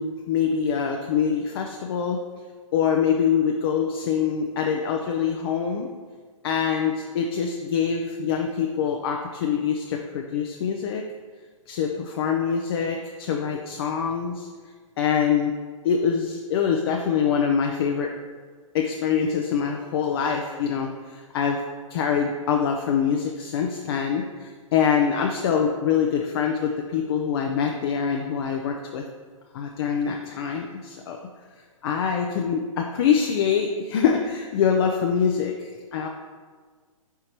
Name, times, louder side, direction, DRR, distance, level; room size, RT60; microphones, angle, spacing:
voice 1, 0.0-2.2 2.7-5.9 6.4-11.0 11.7-14.5 15.0-15.5 15.8-18.1 18.7-21.6 21.9-29.0 29.5-31.3 31.8-36.1, left 7 dB, 45° left, 2 dB, 0.5 m, -24 dB
5.1 x 4.6 x 4.3 m, 1.5 s
hypercardioid pair, 135°, 18 cm